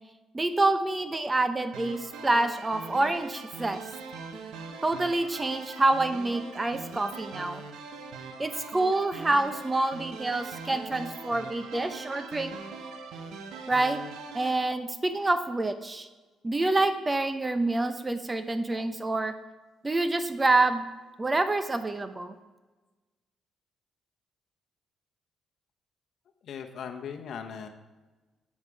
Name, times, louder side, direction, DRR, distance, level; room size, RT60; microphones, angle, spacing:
voice 1, 0.3-3.8 4.8-7.6 8.4-12.6 13.7-14.0 14.3-16.1 16.4-19.3 19.8-20.9 21.2-22.3, right 2 dB, 20° right, 10 dB, 0.7 m, -27 dB
sound 1, 1.7-14.5, right 4 dB, 85° right, 0.9 m, -42 dB
voice 2, 26.4-27.7, left 7 dB, 65° left, 4 dB, 0.9 m, -39 dB
7.3 x 7.1 x 4.7 m, 1.2 s
cardioid pair, 90°, 0 cm